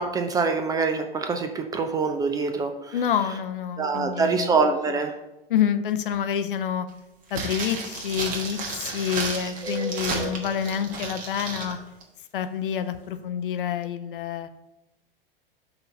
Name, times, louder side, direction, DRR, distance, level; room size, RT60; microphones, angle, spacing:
voice 1, 0.0-3.0 3.8-5.2 9.4-10.3, right 4 dB, 15° right, 6 dB, 0.4 m, -25 dB
voice 2, 2.9-4.5 5.5-6.9 7.3-11.8 12.3-14.5, left 8 dB, 60° left, 10 dB, 0.6 m, -27 dB
sound 1, 7.3-11.7 12.0-12.1, right 4 dB, 30° right, 1.3 m, -33 dB
5.7 x 3.9 x 5.5 m, 0.97 s
figure-of-eight pair, 100°, 29 cm